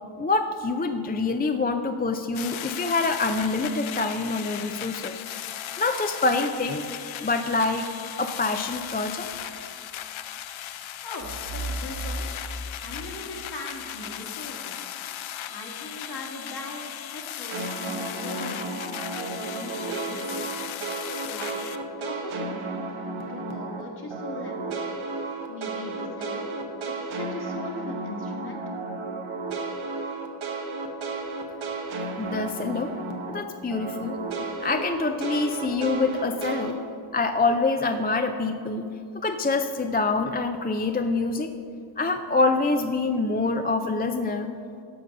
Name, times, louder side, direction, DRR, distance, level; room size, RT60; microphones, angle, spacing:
voice 1, 0.2-5.2 5.8-7.9 8.2-9.3 32.2-32.9 33.3-34.2 34.6-36.8 37.1-38.8 39.1-41.5 42.0-44.5, left 3 dB, 20° left, 7 dB, 0.4 m, -26 dB
sound 1, 2.3-21.8, left 11 dB, 85° left, 0.5 m, -37 dB
voice 2, 11.0-12.3 12.8-14.9 15.5-18.6 19.1-20.5 21.3-21.6 22.0-22.7 23.3-24.7 25.5-26.5 27.1-28.6, left 2 dB, 55° left, 0 dB, 1.8 m, -39 dB
sound 2, 11.2-14.0, right 2 dB, 35° right, 0.7 m, -36 dB
sound 3, 17.5-23.8 24.1-33.4 33.7-36.7, right 3 dB, 90° right, 1.0 m, -33 dB
13.5 x 5.3 x 5.2 m, 2.5 s
cardioid pair, 75°, 46 cm